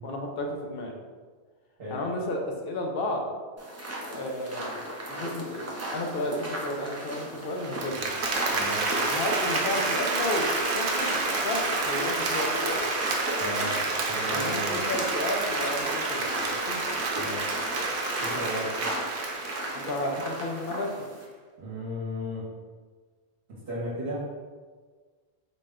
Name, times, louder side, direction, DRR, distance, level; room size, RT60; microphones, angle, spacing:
voice 1, 0.0-0.9 1.9-3.3 4.0-4.8 5.1-8.0 9.1-12.8 14.3-17.1 19.7-20.9, left 1 dB, 65° left, 1 dB, 0.7 m, -32 dB
sound 1, 3.6-21.2, right 1 dB, 25° right, 0.3 m, -36 dB
Applause, 7.6-20.7, right 3 dB, 85° right, 0.9 m, -29 dB
voice 2, 8.5-8.8 13.4-14.8 17.1-17.6 18.2-18.7 21.6-22.4 23.5-24.2, equal, 65° right, -7 dB, 1.1 m, -35 dB
4.0 x 2.1 x 3.5 m, 1.5 s
omnidirectional pair, 1.1 m